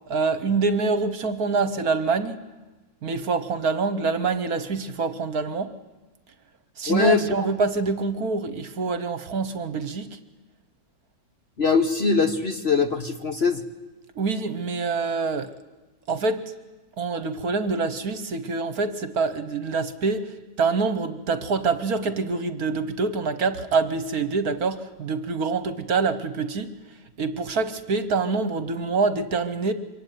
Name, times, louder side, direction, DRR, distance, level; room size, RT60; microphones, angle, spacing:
voice 1, 0.1-2.4 3.0-5.7 6.8-10.2 14.2-15.5 16.1-16.5 17.0-26.7 27.2-29.7, right 4 dB, 55° right, 12 dB, 1.5 m, -25 dB
voice 2, 6.9-7.5 11.6-13.6, left 4 dB, 40° left, 8 dB, 1.3 m, -22 dB
25.0 x 23.5 x 9.3 m, 1.1 s
omnidirectional pair, 2.0 m